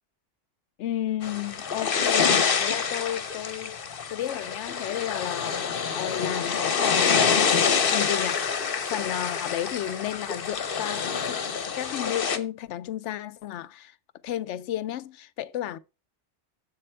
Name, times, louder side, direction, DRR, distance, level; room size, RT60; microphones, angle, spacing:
voice 1, 0.8-3.8 4.1-5.6 5.9-7.4 7.9-8.5 8.9-11.4 11.7-13.9 14.2-15.8, left 12 dB, 80° left, 0.9 m, -33 dB
sound 1, 1.2-12.4, left 6 dB, 55° left, 1.1 m, -26 dB
7.7 x 7.5 x 4.4 m
omnidirectional pair, 1.2 m